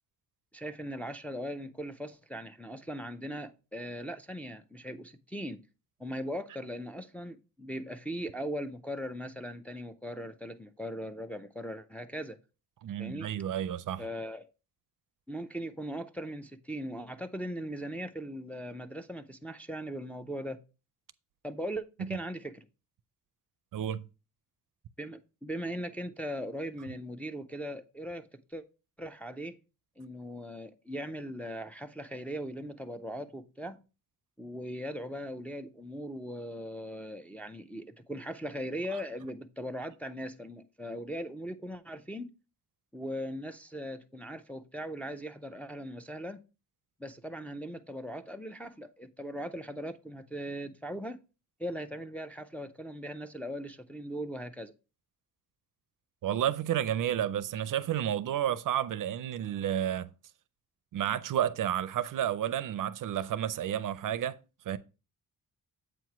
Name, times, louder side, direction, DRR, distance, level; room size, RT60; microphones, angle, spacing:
voice 1, 0.5-5.6 6.0-12.4 13.0-13.3 14.0-14.5 15.3-20.6 21.4-22.6 25.0-28.6 29.0-29.6 30.0-33.8 34.4-42.3 42.9-46.4 47.0-51.2 51.6-54.7, equal, 5° left, 0.4 m, -39 dB
voice 2, 12.8-14.0 23.7-24.1 56.2-60.1 60.9-64.4 64.7-64.8, right 10 dB, 65° right, 0.5 m, -31 dB
7.9 x 3.0 x 5.7 m
cardioid pair, 120°, 35 cm